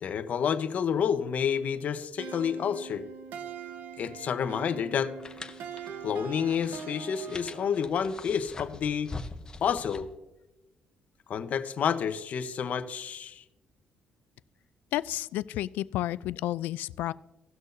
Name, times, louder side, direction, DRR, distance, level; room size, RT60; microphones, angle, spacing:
voice 1, 0.0-3.1 4.0-5.1 6.0-9.1 9.6-10.1 11.3-13.4, left 7 dB, 60° left, 9 dB, 0.9 m, -29 dB
sound 1, 2.2-8.0, right 7 dB, 80° right, 0.9 m, -43 dB
sound 2, 5.2-10.1, left 3 dB, 25° left, 0.8 m, -44 dB
voice 2, 14.9-17.1, left 14 dB, 85° left, 18 dB, 0.3 m, -31 dB
18.0 x 6.2 x 2.6 m, 0.99 s
cardioid pair, 95°, 3 cm